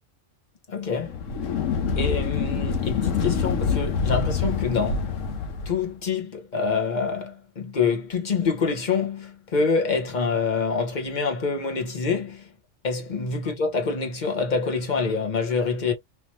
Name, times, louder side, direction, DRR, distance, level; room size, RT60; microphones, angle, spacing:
voice 1, 0.7-1.2 2.0-5.1 5.7-12.4 12.8-15.9, left 5 dB, 40° left, 1.2 m, -26 dB
sound 1, 1.0-5.8, left 6 dB, 80° left, 1.1 m, -26 dB
3.2 x 2.9 x 2.9 m
omnidirectional pair, 1.3 m